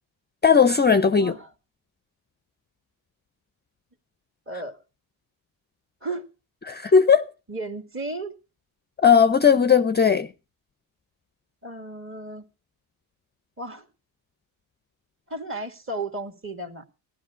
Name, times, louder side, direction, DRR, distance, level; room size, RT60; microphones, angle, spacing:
voice 1, 0.4-1.3 6.7-7.3 9.0-10.3, left 6 dB, 20° left, 0.7 m, -17 dB
voice 2, 1.2-1.5 4.5-4.8 6.0-6.2 7.5-8.3 11.6-12.4 13.6-13.9 15.3-16.9, right 2 dB, 25° right, 2.3 m, -34 dB
15.0 x 11.5 x 5.1 m
supercardioid pair, 70°, 46 cm